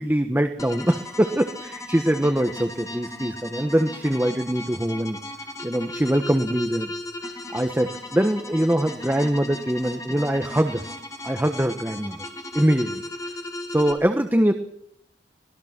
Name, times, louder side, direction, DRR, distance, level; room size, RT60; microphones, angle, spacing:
voice 1, 0.0-5.2 5.6-6.9 7.5-10.8 11.2-12.2 12.5-13.0 13.7-14.5, right 1 dB, 10° right, 6 dB, 1.2 m, -23 dB
sound 1, 0.6-13.9, left 1 dB, 20° left, 2.9 m, -36 dB
25.0 x 19.5 x 6.0 m, 0.72 s
head